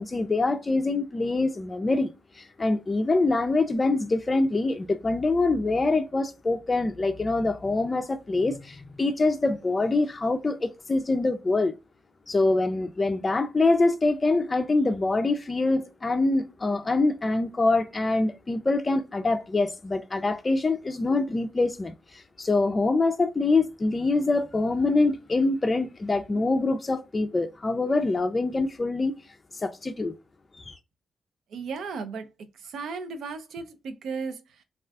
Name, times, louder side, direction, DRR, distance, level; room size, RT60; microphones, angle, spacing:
voice 1, 0.0-11.7 12.3-29.1 29.5-30.1 30.6-30.8, left 3 dB, 35° left, 0.3 m, -25 dB
voice 2, 31.5-34.6, right 5 dB, 70° right, 0.4 m, -36 dB
2.3 x 2.3 x 3.3 m
hypercardioid pair, 45°, 0 cm